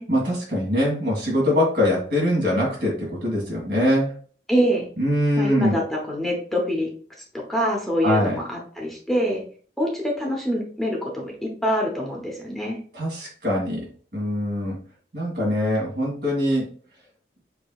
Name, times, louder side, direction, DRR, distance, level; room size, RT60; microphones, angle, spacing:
voice 1, 0.1-4.1 5.0-5.8 8.0-8.4 12.9-13.9 14.1-14.8 15.1-16.7, left 1 dB, 60° right, -4 dB, 2.0 m, -23 dB
voice 2, 4.5-4.9 5.4-6.9 7.3-9.4 9.8-12.8, equal, ahead, -2 dB, 0.9 m, -25 dB
6.6 x 2.9 x 2.3 m, 0.44 s
head